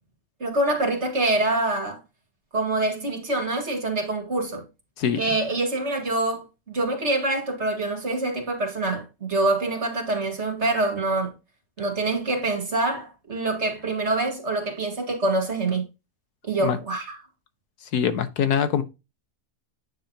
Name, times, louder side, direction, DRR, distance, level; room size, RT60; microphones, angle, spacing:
voice 1, 0.4-2.0 2.5-4.6 5.2-11.3 11.8-15.9 16.4-17.2, right 2 dB, 45° right, 2.4 m, -25 dB
voice 2, 17.9-18.8, left 8 dB, 90° left, 1.5 m, -23 dB
9.4 x 5.3 x 2.9 m
omnidirectional pair, 1.6 m